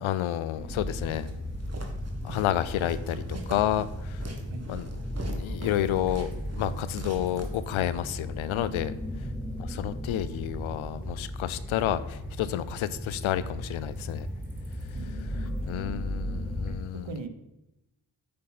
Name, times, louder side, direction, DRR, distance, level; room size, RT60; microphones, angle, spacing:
voice 1, 0.0-1.3 2.2-4.2 4.7-4.9 5.2-6.3 6.6-8.9 9.6-14.3 15.2-17.1, left 12 dB, 85° left, 15 dB, 0.6 m, -30 dB
sound 1, 0.5-16.8, equal, 5° right, 2.2 m, -36 dB
Walk footsteps, 1.1-8.0, right 2 dB, 30° right, 1.5 m, -43 dB
voice 2, 14.9-15.5 16.9-17.3, right 4 dB, 65° right, 8 dB, 1.2 m, -39 dB
8.7 x 5.6 x 4.2 m, 0.91 s
cardioid pair, 60°, 47 cm